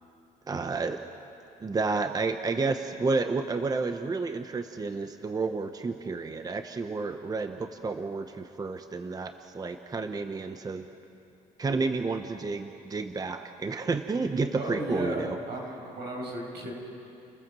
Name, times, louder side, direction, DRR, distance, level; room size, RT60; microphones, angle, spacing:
voice 1, 0.5-1.0 1.6-10.9 11.6-15.4, right 4 dB, 20° right, 7 dB, 0.9 m, -31 dB
voice 2, 14.5-16.7, right 1 dB, 80° right, -1 dB, 6.7 m, -34 dB
30.0 x 15.0 x 7.5 m, 2.8 s
cardioid pair, 110°, 17 cm